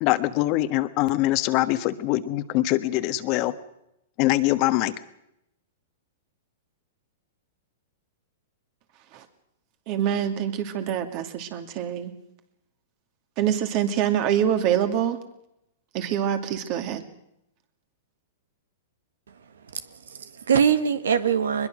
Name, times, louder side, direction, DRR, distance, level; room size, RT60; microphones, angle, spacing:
voice 1, 0.0-3.5 4.2-4.9, left 16 dB, 45° left, 11 dB, 1.4 m, -23 dB
voice 2, 9.9-12.1 13.4-15.2 15.9-17.0, right 9 dB, 45° right, 7 dB, 2.6 m, -25 dB
voice 3, 19.7-21.7, right 7 dB, 85° right, 11 dB, 1.5 m, -23 dB
22.5 x 21.0 x 6.3 m, 0.83 s
hypercardioid pair, 120°, 0 cm